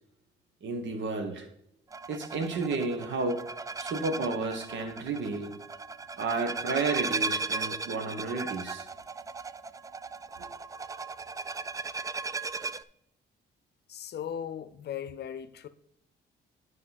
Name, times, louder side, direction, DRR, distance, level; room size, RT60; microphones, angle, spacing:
voice 1, 0.6-1.5 2.1-3.4 3.8-5.6 6.2-8.9 10.4-10.5, right 3 dB, 70° right, 1.4 m, -32 dB
sound 1, 1.9-12.8, right 4 dB, 15° right, 0.3 m, -36 dB
voice 2, 13.9-15.7, left 9 dB, 55° left, 0.7 m, -38 dB
9.7 x 5.3 x 4.1 m
cardioid pair, 90°, 20 cm